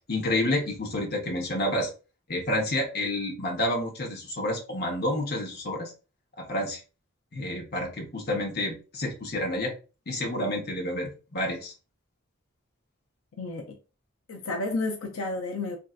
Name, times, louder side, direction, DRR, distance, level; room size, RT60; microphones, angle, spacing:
voice 1, 0.1-1.9 2.3-5.9 6.4-6.8 7.3-9.7 10.1-11.7, left 1 dB, 50° left, 0.9 m, -29 dB
voice 2, 13.4-13.8 14.3-15.8, left 2 dB, 85° left, 0.5 m, -31 dB
3.1 x 2.6 x 2.4 m
head